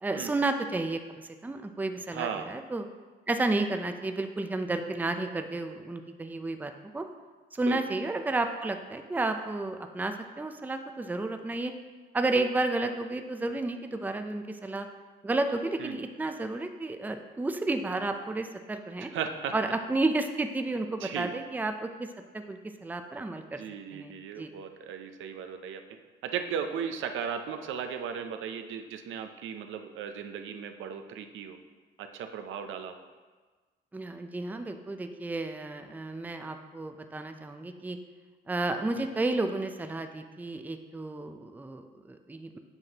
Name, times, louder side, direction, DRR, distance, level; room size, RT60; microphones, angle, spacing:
voice 1, 0.0-2.8 3.3-7.0 7.5-11.7 12.1-14.9 15.2-19.1 19.5-22.1 22.3-23.6 23.9-24.1 24.4-24.5 33.9-38.0 38.5-42.6, right 2 dB, 10° right, 6 dB, 0.4 m, -32 dB
voice 2, 2.1-2.5 7.6-7.8 15.8-16.0 19.1-19.5 21.0-21.4 23.6-25.8 26.2-31.6 32.0-32.9 39.0-39.1, right 7 dB, 80° right, 7 dB, 0.6 m, -36 dB
7.9 x 5.7 x 2.9 m, 1.4 s
cardioid pair, 90°, 20 cm